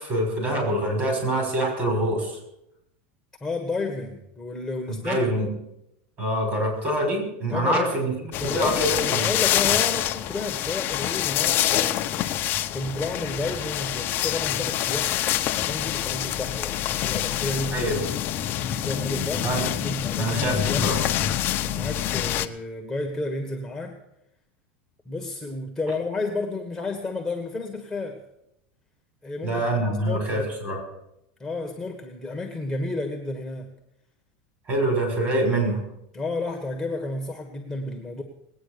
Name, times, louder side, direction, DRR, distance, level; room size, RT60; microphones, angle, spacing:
voice 1, 0.0-2.4 4.9-5.5 6.2-8.1 8.4-9.3 17.7-18.0 19.4-19.7 20.2-21.0 29.4-30.8 34.7-35.8, right 1 dB, 30° right, 2 dB, 6.2 m, -25 dB
voice 2, 3.4-5.2 7.5-7.9 8.4-8.8 9.0-12.4 12.7-15.1 15.6-16.8 17.0-17.9 18.8-21.0 21.5-24.0 25.0-28.2 29.2-29.6 30.0-30.4 31.4-33.7 36.1-38.2, left 2 dB, 5° left, 2 dB, 1.4 m, -31 dB
sound 1, 8.3-22.5, left 12 dB, 35° left, 0.8 m, -26 dB
20.0 x 9.1 x 6.8 m, 0.82 s
supercardioid pair, 150°, 6 cm